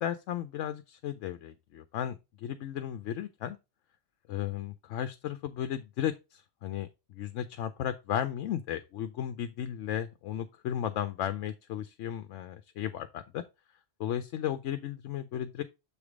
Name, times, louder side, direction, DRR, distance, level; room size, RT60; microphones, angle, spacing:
voice 1, 0.0-3.6 4.3-13.4 14.0-15.6, left 10 dB, 80° left, 0.9 m, -35 dB
7.0 x 3.4 x 4.7 m
omnidirectional pair, 1.3 m